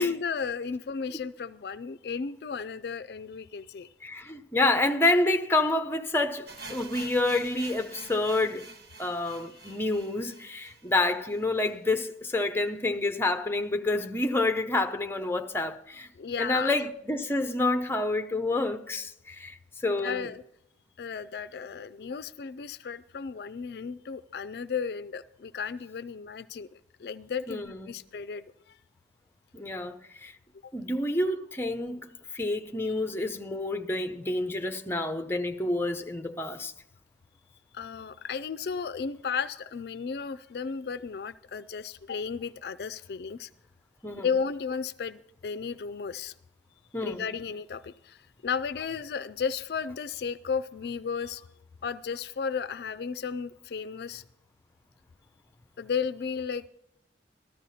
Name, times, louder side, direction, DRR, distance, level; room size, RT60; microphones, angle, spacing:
voice 1, 0.0-3.9 9.6-9.8 16.2-16.7 20.0-20.4 21.0-28.8 30.6-30.7 32.8-32.9 37.7-43.5 44.1-46.3 47.0-51.4 51.8-54.2 55.8-56.7, left 6 dB, 60° left, 0.4 m, -34 dB
voice 2, 4.0-8.7 9.0-16.1 16.4-20.3 27.5-28.0 29.5-30.3 30.7-36.7 44.0-44.4 46.9-47.3, left 2 dB, 15° left, 0.7 m, -28 dB
sound 1, 6.5-12.4 12.6-12.7 13.0-13.1 13.7-13.8, right 3 dB, 60° right, 1.5 m, -47 dB
14.0 x 13.0 x 4.2 m
head